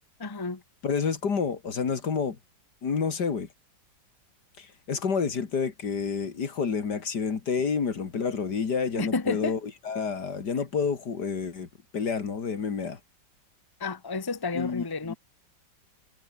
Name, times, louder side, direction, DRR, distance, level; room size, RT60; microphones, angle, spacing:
voice 1, 0.2-0.6 8.9-9.6 13.8-15.1, left 3 dB, 15° left, 1.3 m, -30 dB
voice 2, 0.8-2.4 2.8-3.5 4.6-11.7 11.9-13.0 14.5-15.2, left 5 dB, 70° left, 2.7 m, -29 dB
omnidirectional pair, 1.9 m